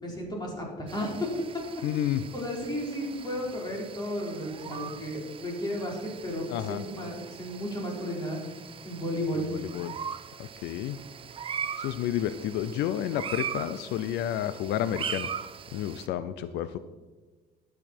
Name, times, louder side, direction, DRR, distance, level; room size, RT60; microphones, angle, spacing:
voice 1, 0.0-1.3 2.3-8.4 8.8-9.5, equal, 25° left, -2 dB, 4.2 m, -33 dB
sound 1, 0.9-16.1, right 7 dB, 30° right, 0.5 m, -40 dB
voice 2, 1.8-2.2 6.5-6.8 9.5-9.9 10.4-11.0 11.8-15.3 15.7-16.8, left 11 dB, 85° left, 12 dB, 0.5 m, -30 dB
12.5 x 8.7 x 4.4 m, 1.3 s
cardioid pair, 110°, 17 cm